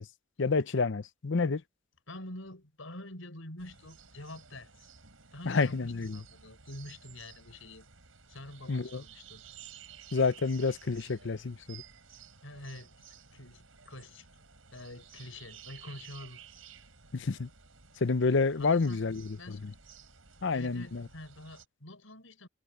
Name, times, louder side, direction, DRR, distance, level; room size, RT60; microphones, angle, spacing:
voice 1, 0.4-1.6 5.5-6.2 8.7-9.0 10.1-11.8 17.1-17.5 18.0-19.6 20.4-21.1, left 4 dB, 65° left, 0.7 m, -29 dB
voice 2, 2.1-4.9 5.3-7.9 8.3-9.4 12.4-12.9 13.3-14.3 14.7-16.4 18.6-19.1 19.4-19.8 20.5-22.5, left 1 dB, 85° left, 6.0 m, -46 dB
sound 1, 3.6-21.6, right 7 dB, 85° right, 5.6 m, -54 dB
head